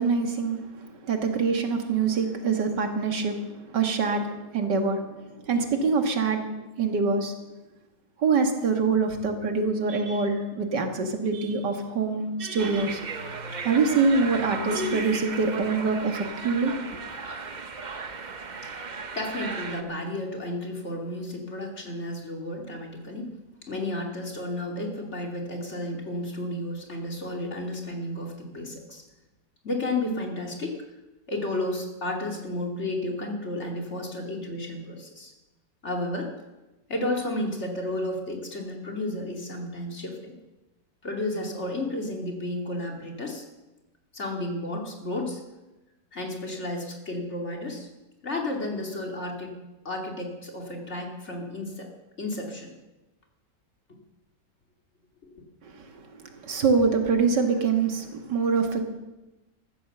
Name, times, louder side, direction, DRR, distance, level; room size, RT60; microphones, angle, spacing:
voice 1, 0.0-5.1 5.4-6.5 6.8-7.3 8.2-13.0 13.6-16.7 55.6-58.8, right 4 dB, 85° right, 5 dB, 2.4 m, -25 dB
sound 1, 12.6-19.8, right 4 dB, 35° right, 0.8 m, -36 dB
voice 2, 18.7-23.3 23.7-29.0 29.6-30.8 31.3-35.3 35.8-36.3 36.9-40.3 41.0-43.4 44.1-45.4 46.1-47.9 48.2-49.6 49.8-51.9 52.2-52.7 55.2-55.3, left 1 dB, 40° left, 1 dB, 2.8 m, -32 dB
14.5 x 14.0 x 6.7 m, 1.0 s
omnidirectional pair, 1.8 m